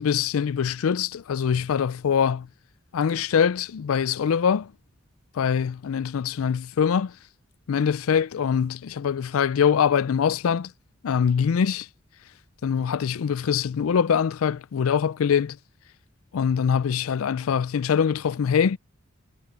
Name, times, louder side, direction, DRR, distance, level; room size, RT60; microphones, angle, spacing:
voice 1, 0.0-2.5 2.9-4.7 5.4-7.1 7.7-10.7 11.0-11.9 12.6-15.6 16.3-18.8, left 7 dB, 80° left, 0.4 m, -23 dB
head